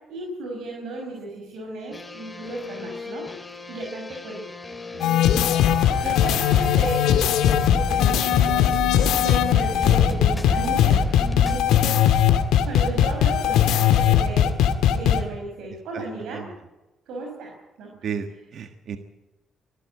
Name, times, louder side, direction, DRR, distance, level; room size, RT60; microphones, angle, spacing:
voice 1, 0.1-3.3 3.7-4.4 5.8-8.7 9.2-11.0 11.5-12.1 12.6-14.5 14.9-16.5 17.1-17.5 17.8-17.9, right 2 dB, 85° right, 0 dB, 5.7 m, -34 dB
sound 1, 1.9-11.7, left 2 dB, 20° left, 2.7 m, -33 dB
voice 2, 4.9-5.2 5.8-6.1 15.9-16.0 16.3-16.4 18.0-18.3 18.5-19.0, right 7 dB, 65° right, 7 dB, 1.5 m, -33 dB
sound 2, 5.0-15.2, left 10 dB, 90° left, 1.8 m, -19 dB
22.5 x 13.5 x 8.9 m, 1.0 s
cardioid pair, 90°, 0 cm